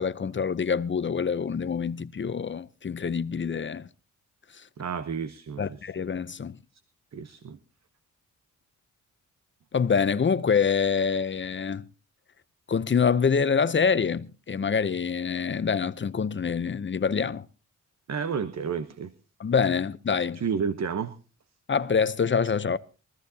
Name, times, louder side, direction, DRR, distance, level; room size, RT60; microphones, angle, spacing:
voice 1, 0.0-3.9 5.6-6.6 9.7-11.9 12.7-17.5 19.4-20.4 21.7-22.8, left 6 dB, 35° left, 0.7 m, -26 dB
voice 2, 4.8-5.8 7.1-7.6 18.1-19.1 20.4-21.1, right 6 dB, 55° right, 1.0 m, -31 dB
23.5 x 14.0 x 2.8 m
cardioid pair, 75°, 33 cm